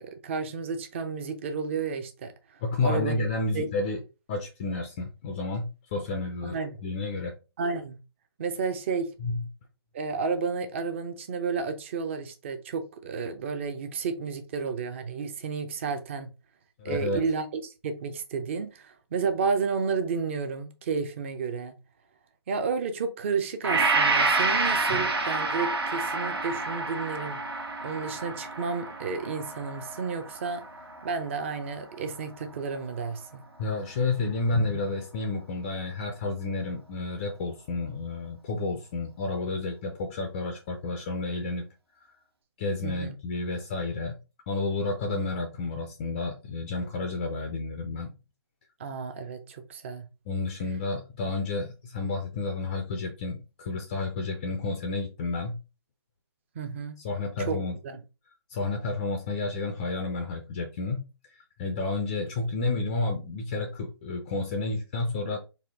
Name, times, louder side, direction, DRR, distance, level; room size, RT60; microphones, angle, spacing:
voice 1, 0.0-2.3 2.8-3.2 3.5-3.7 6.4-6.8 7.6-8.0 8.4-9.1 9.9-16.3 16.8-21.7 22.5-27.4 27.8-30.6 31.0-33.4 42.8-43.1 48.8-50.0 56.6-57.0 57.4-57.6 57.8-58.0, right 5 dB, 30° right, 0.6 m, -31 dB
voice 2, 2.6-4.0 4.3-7.3 9.2-9.4 16.8-17.2 24.9-25.1 33.6-41.6 42.0-42.1 42.6-44.1 44.5-48.1 50.3-55.6 57.0-57.7 58.5-61.1 61.6-65.4, left 3 dB, 20° left, 0.4 m, -31 dB
Gong, 23.6-32.0 32.4-32.5, right 3 dB, 65° right, 1.2 m, -28 dB
4.3 x 2.6 x 3.5 m
figure-of-eight pair, 145°, 14 cm